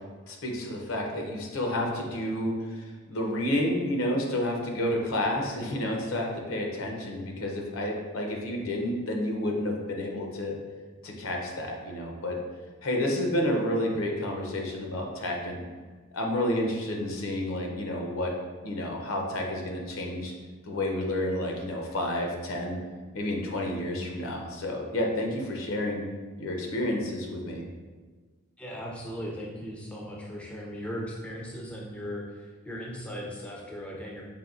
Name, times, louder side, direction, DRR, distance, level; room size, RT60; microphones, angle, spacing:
voice 1, 0.3-10.6 11.0-12.4 12.8-15.6 16.1-18.3 18.6-20.3 20.7-22.8 23.1-26.0 26.4-27.6, left 1 dB, 80° left, 1 dB, 0.7 m, -30 dB
voice 2, 28.6-34.2, equal, 5° left, -3 dB, 0.4 m, -38 dB
5.2 x 2.6 x 2.5 m, 1.4 s
head